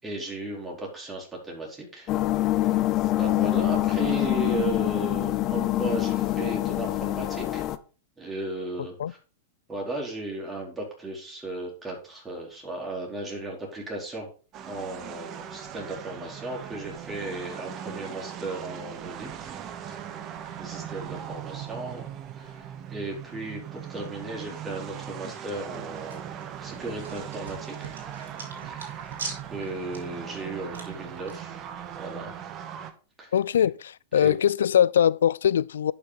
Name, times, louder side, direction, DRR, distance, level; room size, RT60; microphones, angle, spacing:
voice 1, 0.0-2.1 2.6-2.8 3.2-7.6 8.2-9.2 9.7-14.3 14.7-19.6 19.9-20.1 20.6-22.0 22.3-26.2 26.6-27.9 28.6-29.1 29.5-31.6 32.0-32.3 33.2-33.3 34.2-34.4, right 2 dB, 15° right, 4.3 m, -35 dB
sound 1, 2.1-7.8, left 15 dB, 35° left, 0.7 m, -25 dB
sound 2, 14.5-32.9, right 9 dB, 35° right, 1.2 m, -39 dB
sound 3, 25.7-31.4, right 4 dB, 75° right, 3.4 m, -43 dB
voice 2, 33.3-35.9, left 9 dB, 70° left, 0.3 m, -22 dB
11.0 x 6.1 x 4.1 m
hypercardioid pair, 105°, 0 cm